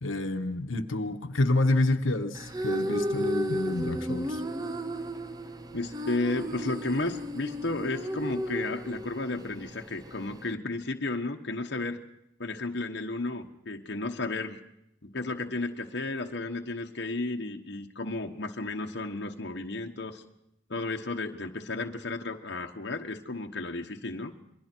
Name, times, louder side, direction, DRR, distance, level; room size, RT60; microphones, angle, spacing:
voice 1, 0.0-4.4, left 2 dB, 75° left, 5 dB, 1.2 m, -28 dB
sound 1, 2.3-10.6, equal, 20° right, 0.7 m, -34 dB
voice 2, 5.7-12.0 12.4-14.6 15.0-20.2 20.7-24.3, left 2 dB, 55° left, 3 dB, 1.2 m, -33 dB
27.5 x 22.0 x 4.6 m, 0.76 s
head